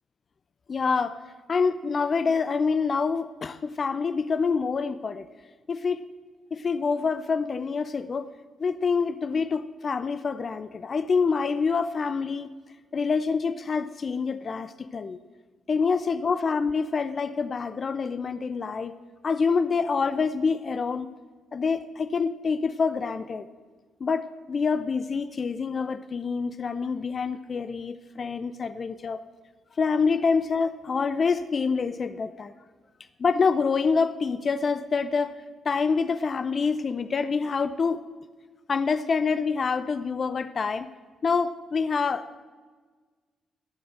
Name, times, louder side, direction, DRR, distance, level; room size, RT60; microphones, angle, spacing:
voice 1, 0.7-1.2 1.5-5.2 5.7-6.0 6.5-8.3 8.6-12.5 12.9-15.2 15.7-18.9 19.2-21.1 21.5-23.5 24.0-29.2 29.8-32.5 33.2-35.4 35.6-38.0 38.7-40.9 41.2-42.4, left 5 dB, 45° left, 11 dB, 0.7 m, -26 dB
14.5 x 9.5 x 7.7 m, 1.4 s
hypercardioid pair, 45°, 0 cm